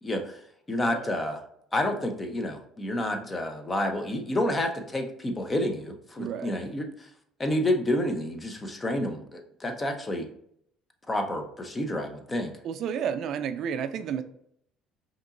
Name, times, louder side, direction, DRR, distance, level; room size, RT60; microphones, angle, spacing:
voice 1, 0.0-0.4 0.7-1.4 1.7-7.1 7.4-10.3 11.1-12.5, left 1 dB, 25° left, 5 dB, 0.8 m, -29 dB
voice 2, 6.2-6.6 12.6-14.2, right 8 dB, 60° right, 10 dB, 0.4 m, -32 dB
5.2 x 3.0 x 2.6 m, 0.70 s
supercardioid pair, 85°, 0 cm